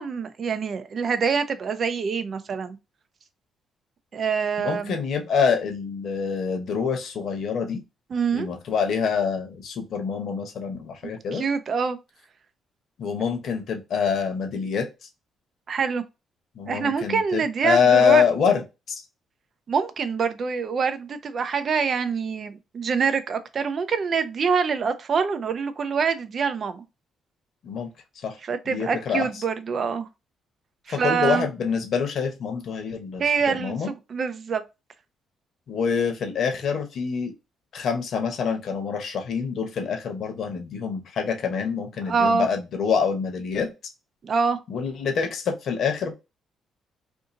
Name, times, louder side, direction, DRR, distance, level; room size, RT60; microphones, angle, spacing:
voice 1, 0.0-2.8 4.1-5.0 8.1-8.5 11.3-12.0 15.7-16.0 16.7-18.2 19.7-26.8 28.4-30.1 30.9-31.5 33.2-34.6 42.1-42.5 44.2-44.6, right 5 dB, 50° right, 0.5 m, -25 dB
voice 2, 4.6-7.8 8.3-11.4 13.0-14.9 16.5-18.6 27.6-27.9 28.2-28.4 28.7-29.4 30.9-33.9 35.7-37.3 37.7-43.7 44.7-46.1, left 6 dB, 65° left, 0.9 m, -25 dB
2.6 x 2.6 x 3.8 m
cardioid pair, 90°, 0 cm